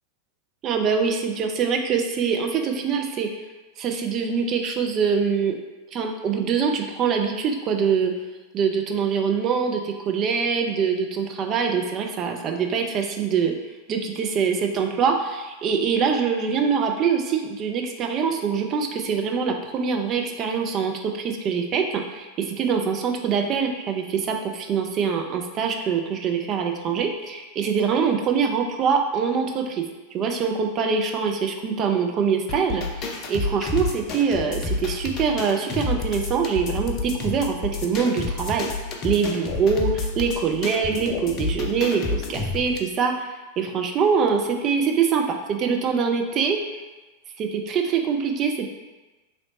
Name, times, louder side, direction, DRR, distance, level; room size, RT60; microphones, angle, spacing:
voice 1, 0.6-3.3 3.8-5.6 5.9-8.1 8.5-13.5 13.9-29.8 30.1-38.7 39.0-46.6 47.4-48.7, right 6 dB, 30° right, 3 dB, 0.5 m, -24 dB
sound 1, 32.5-42.8, left 3 dB, 35° left, 0.5 m, -29 dB
3.0 x 3.0 x 4.0 m, 1.2 s
figure-of-eight pair, 90°, 0 cm